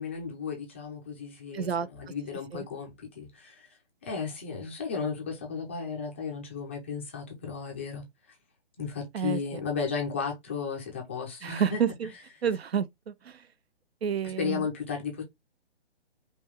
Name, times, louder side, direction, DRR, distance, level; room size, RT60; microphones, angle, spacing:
voice 1, 0.0-8.4 8.8-11.8 14.4-15.2, left 5 dB, 10° left, 0.4 m, -34 dB
voice 2, 1.5-1.9 2.5-2.6 9.1-9.6 11.4-12.1 12.4-13.5 14.0-14.7, right 8 dB, 70° right, 0.6 m, -29 dB
5.1 x 2.3 x 3.5 m
hypercardioid pair, 150°, 33 cm